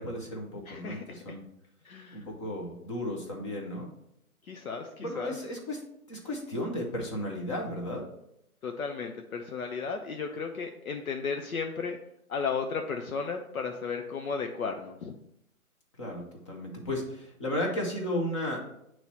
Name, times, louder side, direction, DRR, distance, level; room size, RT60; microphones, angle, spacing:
voice 1, 0.0-1.4 2.1-3.9 5.0-5.8 6.1-8.1 16.0-18.6, left 1 dB, 20° left, 0 dB, 0.7 m, -34 dB
voice 2, 0.7-1.4 1.8-2.3 4.4-5.4 8.6-12.0 12.3-15.1, left 5 dB, 70° left, 4 dB, 0.7 m, -34 dB
7.8 x 3.1 x 4.1 m, 0.78 s
figure-of-eight pair, 140°, 44 cm